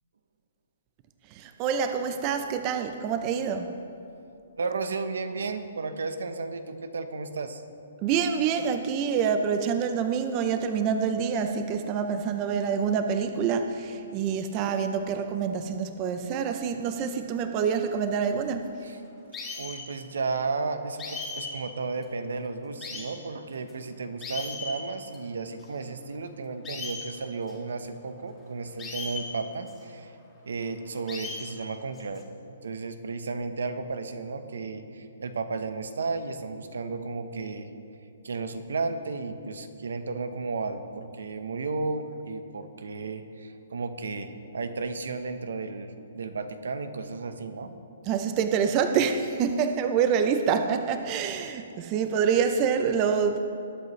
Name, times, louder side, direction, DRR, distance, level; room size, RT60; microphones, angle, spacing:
voice 1, 1.3-3.7 8.0-18.7 48.1-53.4, right 6 dB, 20° right, 7 dB, 0.5 m, -26 dB
voice 2, 4.6-7.6 18.8-19.0 19.6-30.1 30.4-32.2 32.6-37.7 38.2-47.8, right 4 dB, 85° right, 9 dB, 0.9 m, -33 dB
sound 1, 19.3-19.8 21.0-21.5 22.0-22.1 22.8-23.1 23.7-23.8 24.2-24.7 25.1-25.2 25.6-25.7 26.6-27.0 27.5-27.6 28.8-29.2 29.7-29.8 31.1-31.5 32.0-32.2, left 4 dB, 10° left, 1.3 m, -36 dB
20.0 x 8.1 x 3.2 m, 2.7 s
hypercardioid pair, 170°, 0 cm